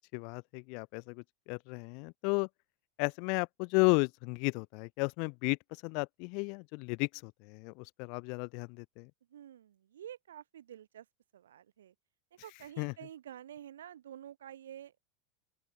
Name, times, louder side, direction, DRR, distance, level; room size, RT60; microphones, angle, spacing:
voice 1, 0.0-2.5 3.0-5.6 5.8-9.1 12.8-12.9, left 36 dB, 55° left, 1.9 m, -33 dB
voice 2, 9.3-11.0 11.3-11.9 12.3-15.0, right 10 dB, 75° right, 3.0 m, -49 dB
open air
hypercardioid pair, 85°, 0 cm